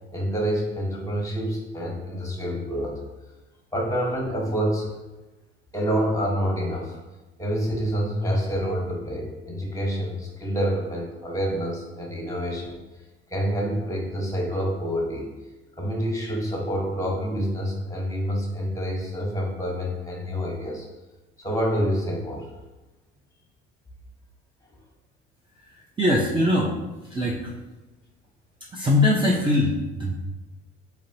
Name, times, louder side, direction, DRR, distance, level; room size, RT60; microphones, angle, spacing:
voice 1, 0.1-3.0 3.7-5.0 5.7-7.0 7.4-12.8 13.3-15.3 15.8-20.8 21.4-22.5, equal, 10° left, -1 dB, 1.3 m, -27 dB
voice 2, 26.0-26.7 27.1-27.5 28.7-30.1, left 1 dB, 15° right, -4 dB, 0.6 m, -21 dB
3.9 x 3.3 x 2.8 m, 1.1 s
hypercardioid pair, 60°, 30 cm